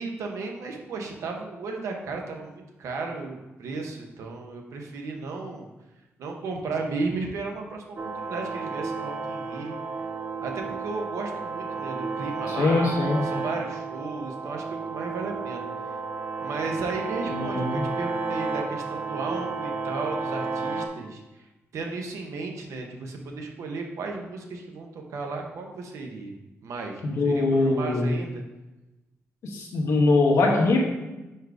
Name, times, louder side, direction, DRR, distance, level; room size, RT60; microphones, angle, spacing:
voice 1, 0.0-5.7 6.2-9.8 10.4-13.0 13.2-16.0 16.4-21.5 21.7-26.3 26.6-28.4, right 3 dB, 90° right, 2 dB, 0.9 m, -34 dB
sound 1, 8.0-20.9, right 4 dB, 50° right, 0.6 m, -32 dB
voice 2, 12.5-13.2 17.3-17.8 27.0-28.1 29.4-30.8, left 2 dB, 90° left, 0 dB, 1.2 m, -22 dB
5.0 x 4.5 x 4.6 m, 1.1 s
cardioid pair, 110°, 5 cm